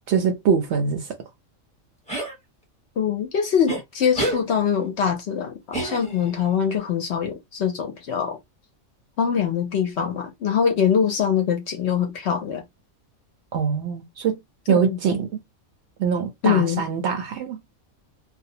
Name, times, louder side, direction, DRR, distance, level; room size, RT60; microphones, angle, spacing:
voice 1, 0.1-1.1 13.5-14.4 14.7-15.4 16.0-17.6, right 6 dB, 65° right, 0.7 m, -23 dB
sound 1, 2.1-2.3 3.7-3.8 4.1-4.4 5.7-6.4, right 1 dB, 5° left, 0.8 m, -27 dB
voice 2, 3.0-8.4 9.2-12.6 14.7-15.0 16.4-16.8, left 7 dB, 60° left, 0.8 m, -23 dB
2.5 x 2.0 x 2.7 m
omnidirectional pair, 1.5 m